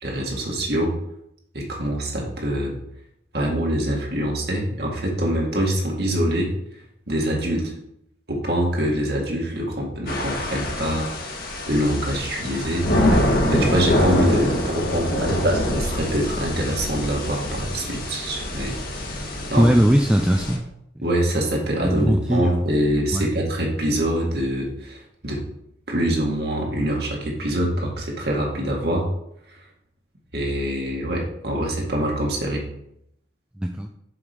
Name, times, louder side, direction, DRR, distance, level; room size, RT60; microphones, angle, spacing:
voice 1, 0.0-0.9 1.5-2.8 3.3-6.5 7.1-7.7 8.3-11.1 11.7-13.3 13.5-19.7 21.0-25.4 25.9-29.1 29.5-29.6 30.3-32.6, right 1 dB, 55° right, -1 dB, 2.0 m, -24 dB
sound 1, 10.1-20.6, left 1 dB, 50° left, 1.5 m, -25 dB
voice 2, 19.6-20.6 21.0-21.1 21.8-22.6 23.1-23.3 33.6-33.9, equal, 5° right, 3 dB, 0.4 m, -19 dB
7.1 x 4.8 x 5.2 m, 0.76 s
head